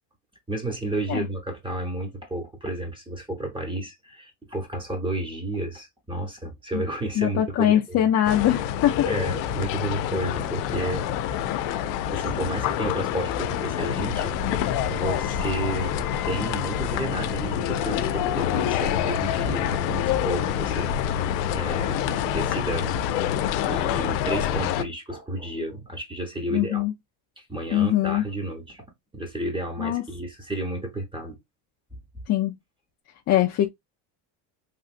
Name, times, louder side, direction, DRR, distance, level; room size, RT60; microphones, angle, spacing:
voice 1, 0.5-8.1 9.1-11.5 12.1-14.4 14.9-21.3 21.5-23.0 23.7-26.8 27.4-28.8 29.1-31.4, right 1 dB, 10° right, 1.0 m, -32 dB
voice 2, 7.2-9.1 26.5-26.9 27.7-28.2 29.8-30.0 32.3-32.5 33.3-33.7, left 12 dB, 35° left, 0.4 m, -22 dB
sound 1, 8.2-24.8, left 10 dB, 85° left, 0.6 m, -26 dB
3.3 x 2.6 x 2.4 m
supercardioid pair, 100°, 47 cm